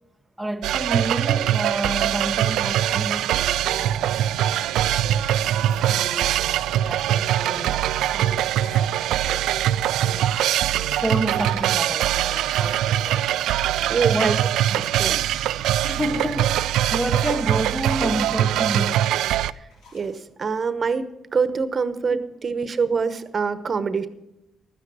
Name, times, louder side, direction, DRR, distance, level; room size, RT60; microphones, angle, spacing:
voice 1, 0.4-8.4 8.7-9.4 10.0-10.4 11.0-13.5 14.1-14.5 15.3-15.4 15.8-19.1 22.0-22.2, right 1 dB, ahead, 0.7 m, -30 dB
sound 1, 0.6-19.5, right 12 dB, 85° right, 0.3 m, -22 dB
sound 2, 7.6-9.0 9.4-9.5 10.3-10.4 10.6-10.9 11.2-12.0 13.1-14.4 16.3-17.8 18.9-20.3, left 3 dB, 90° left, 3.0 m, -51 dB
voice 2, 13.9-14.3 14.7-15.2 19.6-19.7 19.9-21.1 21.3-24.1, right 5 dB, 40° right, 1.0 m, -25 dB
12.5 x 9.9 x 6.3 m
cardioid pair, 90°, 0 cm